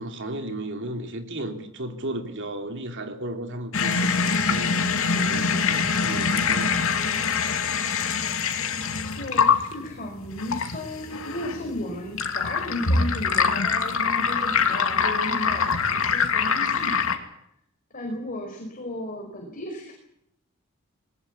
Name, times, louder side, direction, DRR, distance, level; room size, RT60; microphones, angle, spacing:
voice 1, 0.0-6.8, right 1 dB, 55° right, 3.2 m, -35 dB
sound 1, 3.7-17.2, left 5 dB, 65° left, 2.6 m, -24 dB
voice 2, 9.2-17.0 17.9-19.9, left 1 dB, 40° left, 5.4 m, -34 dB
21.5 x 20.5 x 8.4 m
head